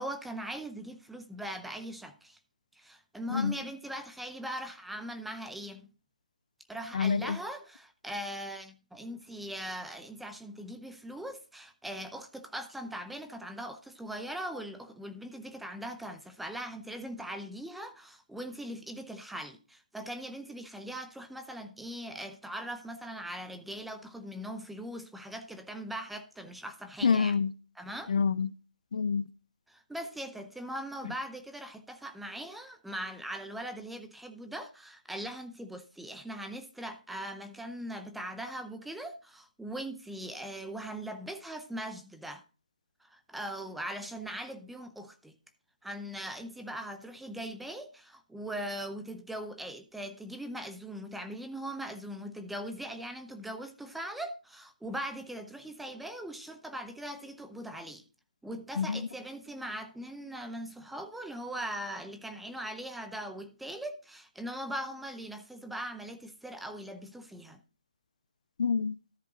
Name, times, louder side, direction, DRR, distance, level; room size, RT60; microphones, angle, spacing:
voice 1, 0.0-2.4 2.8-5.9 6.7-27.3 27.8-28.1 29.7-42.4 43.0-45.3 45.8-58.0 58.4-67.6, right 1 dB, ahead, 0.6 m, -40 dB
voice 2, 6.9-7.4 27.0-27.5 28.1-28.5 28.9-29.3 58.8-59.0 68.6-68.9, left 5 dB, 65° left, 0.6 m, -27 dB
13.5 x 5.1 x 3.9 m
hypercardioid pair, 160°, 4 cm